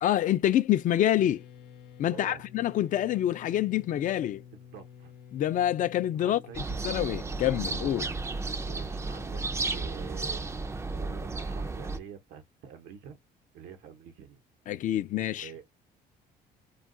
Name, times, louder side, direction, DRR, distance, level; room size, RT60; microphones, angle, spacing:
voice 1, 0.0-1.4 2.0-4.4 5.3-6.4 6.8-8.1 14.7-15.5, left 12 dB, 50° left, 0.4 m, -26 dB
sound 1, 1.1-11.4, left 7 dB, 80° left, 0.7 m, -51 dB
voice 2, 2.1-2.4 4.7-5.1 6.2-6.6 8.6-9.4 9.7-10.5 10.9-13.2 13.5-14.4 15.3-15.7, right 8 dB, 80° right, 0.8 m, -46 dB
sound 2, 6.5-12.0, right 3 dB, 15° right, 0.4 m, -33 dB
2.3 x 2.3 x 3.7 m
cardioid pair, 110°, 17 cm